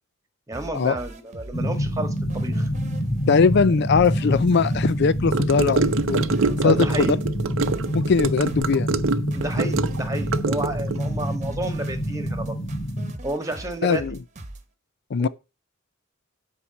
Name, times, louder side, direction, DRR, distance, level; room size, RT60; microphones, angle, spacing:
voice 1, 0.5-2.7 6.6-7.2 9.3-12.6 13.2-14.2 15.2-15.3, right 1 dB, 15° right, 1.8 m, -31 dB
sound 1, 0.5-14.6, right 1 dB, 35° right, 1.2 m, -40 dB
sound 2, 1.5-13.1, equal, 75° left, 3.4 m, -27 dB
voice 2, 3.3-6.3 6.6-7.2 7.9-8.9 13.8-14.2 15.1-15.3, left 5 dB, 55° left, 0.4 m, -20 dB
Gurgling / Car passing by / Sink (filling or washing), 5.3-11.0, right 4 dB, 75° right, 0.7 m, -25 dB
9.9 x 4.7 x 7.0 m
head